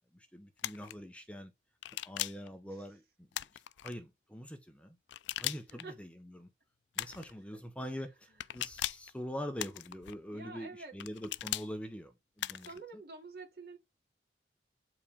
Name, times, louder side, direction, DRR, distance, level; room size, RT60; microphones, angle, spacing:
voice 1, 0.1-1.5 2.0-3.0 3.8-5.0 5.4-6.1 6.4-6.5 7.0-12.1 12.4-12.7, equal, 5° left, 0.8 m, -43 dB
sound 1, 0.6-0.9 1.8-2.5 3.3-3.9 5.1-5.8 6.9-7.3 8.4-9.1 9.6-10.1 11.0-11.7 12.4-12.8, left 14 dB, 90° left, 0.3 m, -38 dB
voice 2, 7.1-8.0 8.3-8.6 10.3-11.0 12.5-13.8, right 3 dB, 60° right, 2.6 m, -50 dB
8.4 x 4.9 x 3.6 m
head